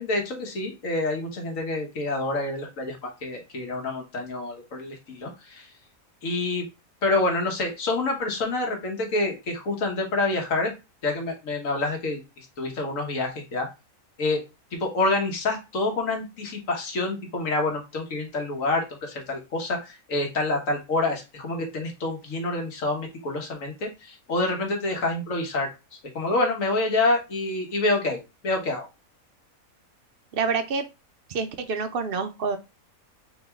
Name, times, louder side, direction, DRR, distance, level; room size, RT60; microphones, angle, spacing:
voice 1, 0.0-5.7 6.2-6.7 7.0-10.7 11.0-13.7 14.2-14.4 14.7-25.7 26.2-28.9, left 2 dB, 65° left, 2 dB, 1.6 m, -27 dB
voice 2, 30.3-30.9 31.3-32.6, right 5 dB, 65° right, 9 dB, 0.5 m, -27 dB
4.2 x 3.1 x 3.5 m, 0.26 s
omnidirectional pair, 1.6 m